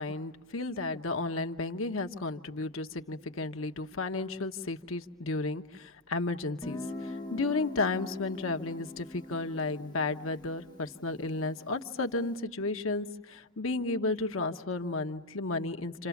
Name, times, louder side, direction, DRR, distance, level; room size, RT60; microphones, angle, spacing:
voice 1, 0.0-16.1, left 3 dB, 90° left, 6 dB, 1.1 m, -33 dB
Guitar, 6.6-12.2, left 2 dB, 20° left, 1.4 m, -43 dB
29.5 x 27.0 x 7.2 m, 1.0 s
head